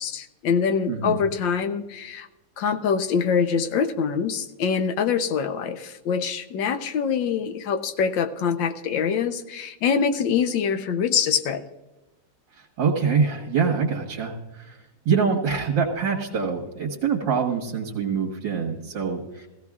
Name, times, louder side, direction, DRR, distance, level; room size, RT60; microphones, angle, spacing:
voice 1, 0.0-2.3 2.6-11.7, left 6 dB, 80° left, 9 dB, 1.5 m, -24 dB
voice 2, 0.9-1.2 12.6-14.8 15.1-19.5, right 5 dB, 75° right, -1 dB, 2.1 m, -25 dB
17.0 x 15.5 x 2.4 m, 1.0 s
omnidirectional pair, 2.0 m